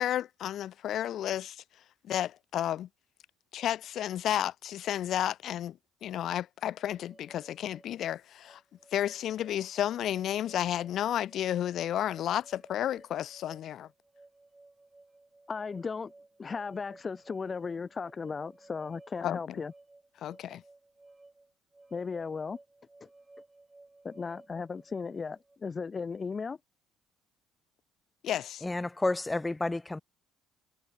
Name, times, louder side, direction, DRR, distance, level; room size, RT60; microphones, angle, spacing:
voice 1, 0.0-1.6 2.0-2.9 3.5-8.6 8.9-13.9 19.2-19.6 20.2-20.6 28.2-28.6, left 11 dB, 55° left, 1.5 m, -32 dB
sound 1, 6.8-25.6, right 2 dB, 15° right, 3.6 m, -57 dB
voice 2, 15.5-16.1 16.4-19.7 21.9-22.6 23.0-23.1 24.0-26.6, left 5 dB, 35° left, 0.8 m, -36 dB
voice 3, 28.6-30.0, left 2 dB, 15° left, 1.4 m, -30 dB
figure-of-eight pair, 55°, 0 cm